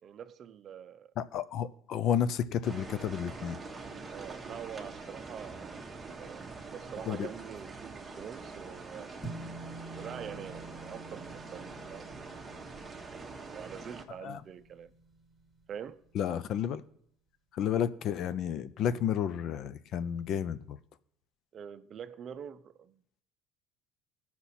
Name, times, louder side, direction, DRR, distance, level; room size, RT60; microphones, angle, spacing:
voice 1, 0.0-1.1 4.1-9.1 9.9-12.4 13.1-14.9 15.7-16.0 21.5-23.2, right 8 dB, 35° right, 0.5 m, -45 dB
voice 2, 1.2-3.6 7.1-7.3 14.2-14.4 16.1-16.8 17.5-20.8, left 9 dB, 50° left, 0.5 m, -31 dB
sound 1, 2.6-14.0, right 3 dB, 15° right, 1.0 m, -44 dB
sound 2, 9.2-15.8, right 2 dB, 10° left, 1.5 m, -48 dB
17.5 x 5.9 x 4.2 m
cardioid pair, 130°, 0 cm